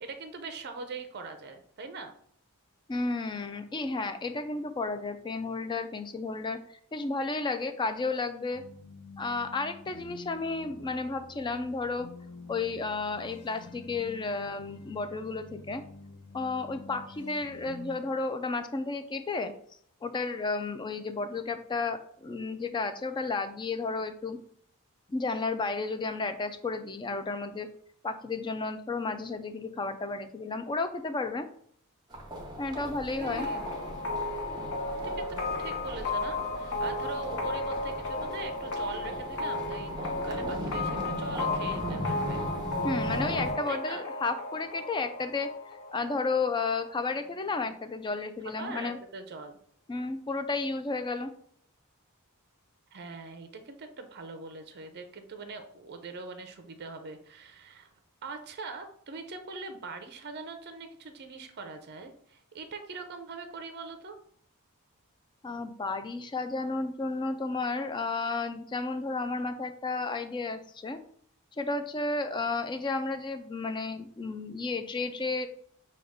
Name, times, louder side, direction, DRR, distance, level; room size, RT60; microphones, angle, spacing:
voice 1, 0.0-2.1 33.1-34.1 35.2-35.3 35.6-42.4 43.7-44.0 47.1-47.2 47.7-47.8 48.4-49.6 52.9-57.9 58.2-64.2, right 4 dB, 50° right, 7 dB, 0.5 m, -42 dB
voice 2, 2.9-6.6 6.9-8.6 9.2-12.1 12.5-15.8 16.3-19.5 20.0-24.4 25.1-27.7 28.0-31.5 32.6-33.5 42.8-45.5 45.9-49.0 49.9-51.3 65.4-71.0 71.6-75.5, left 3 dB, 20° left, 9 dB, 0.3 m, -32 dB
sound 1, 8.5-18.0, left 4 dB, 90° left, 0.6 m, -48 dB
sound 2, 32.1-43.5, equal, 20° right, 0.8 m, -38 dB
sound 3, 33.4-46.9, left 3 dB, 60° left, 0.8 m, -34 dB
6.3 x 2.3 x 3.5 m, 0.63 s
head